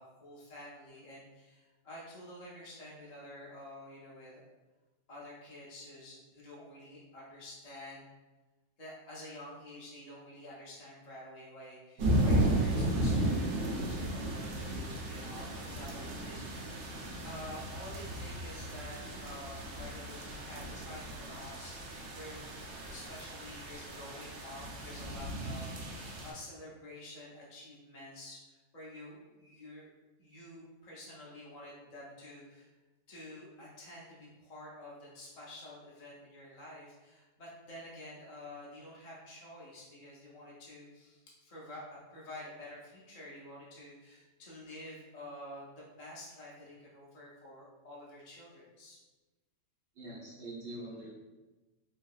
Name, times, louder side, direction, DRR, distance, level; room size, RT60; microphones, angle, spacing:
voice 1, 0.0-4.4 5.1-8.1 8.8-16.8 17.2-22.4 22.9-28.4 28.7-29.9 30.2-32.7 33.1-49.0, left 1 dB, 70° left, -6 dB, 0.3 m, -49 dB
sound 1, 12.0-26.3, right 1 dB, 90° right, 1.2 m, -34 dB
voice 2, 50.0-51.1, right 1 dB, 65° right, -6 dB, 0.6 m, -44 dB
3.3 x 2.7 x 2.3 m, 1.2 s
omnidirectional pair, 1.7 m